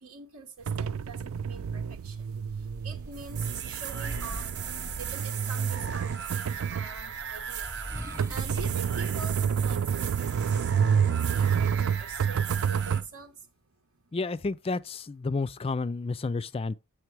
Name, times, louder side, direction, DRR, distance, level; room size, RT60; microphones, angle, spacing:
voice 1, 0.0-2.2 2.8-4.5 5.0-6.4 6.7-7.8 8.3-13.3, right 4 dB, 85° right, 0.9 m, -44 dB
sound 1, 0.7-13.0, right 7 dB, 70° right, 0.3 m, -29 dB
sound 2, 2.1-5.7 6.7-10.3, equal, 15° right, 0.7 m, -44 dB
sound 3, 3.1-13.0, right 8 dB, 50° right, 0.8 m, -38 dB
voice 2, 14.1-16.7, left 3 dB, 25° left, 0.3 m, -31 dB
7.4 x 5.8 x 4.7 m
head